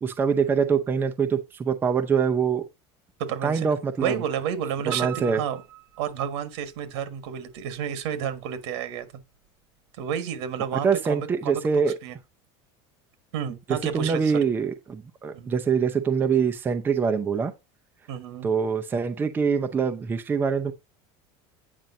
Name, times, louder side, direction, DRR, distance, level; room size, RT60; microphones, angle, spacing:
voice 1, 0.0-2.6 3.4-4.2 4.9-5.4 10.8-11.9 13.7-17.5 18.4-20.7, right 6 dB, 15° right, 0.6 m, -24 dB
voice 2, 3.2-3.7 4.0-5.6 6.0-9.1 10.0-12.2 13.3-14.3 15.3-15.5 18.1-18.5, right 8 dB, 80° right, 1.6 m, -31 dB
Piano, 4.9-6.8 7.3-8.1 8.4-8.5 9.0-9.1 9.3-9.4, right 13 dB, 60° right, 0.8 m, -40 dB
9.0 x 5.2 x 2.7 m
cardioid pair, 170°, 14 cm